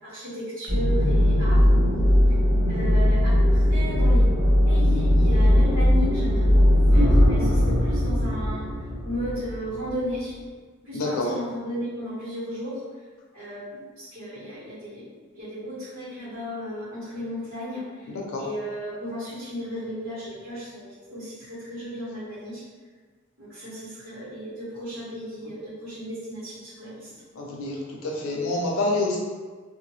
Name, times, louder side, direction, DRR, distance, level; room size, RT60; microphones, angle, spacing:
voice 1, 0.0-1.7 2.7-4.3 4.7-8.7 9.0-10.3 10.8-12.8 13.3-15.0 15.4-18.1 18.4-22.6 23.4-27.1, equal, 85° right, -10 dB, 0.9 m, -34 dB
sound 1, 0.7-10.0, equal, 65° right, 1.2 m, -19 dB
voice 2, 10.9-11.3 18.3-18.4 27.4-27.7 28.0-29.2, left 2 dB, 80° left, -2 dB, 0.5 m, -26 dB
2.7 x 2.1 x 3.0 m, 1.4 s
head